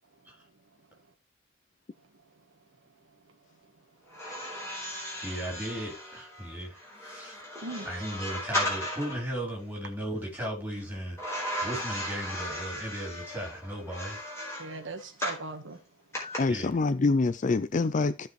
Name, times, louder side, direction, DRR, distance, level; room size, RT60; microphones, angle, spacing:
voice 1, 2.0-2.3 3.0-3.7 4.1-4.3 4.8-4.9 7.6-7.9 14.6-15.8, right 3 dB, 60° right, 1.4 m, -41 dB
metal gate, 4.1-9.2 11.2-15.5 16.1-16.4, equal, 15° left, 4.3 m, -36 dB
voice 2, 5.2-7.4 7.9-14.3 16.5-16.8, right 1 dB, 10° right, 4.1 m, -36 dB
voice 3, 16.4-18.3, left 3 dB, 35° left, 0.4 m, -25 dB
15.5 x 5.3 x 3.2 m
head